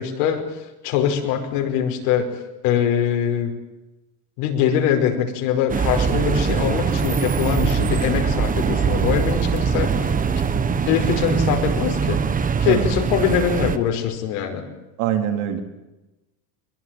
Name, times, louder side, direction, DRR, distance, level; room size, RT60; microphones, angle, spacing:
voice 1, 0.0-2.3 2.6-3.5 4.4-10.1 10.9-12.2 12.6-14.6, left 8 dB, 75° left, 4 dB, 5.5 m, -22 dB
sound 1, 5.7-13.8, right 6 dB, 15° right, 1.2 m, -22 dB
voice 2, 15.0-15.6, right 10 dB, 70° right, 4 dB, 4.0 m, -23 dB
22.5 x 22.0 x 9.2 m, 1.0 s
supercardioid pair, 145°, 47 cm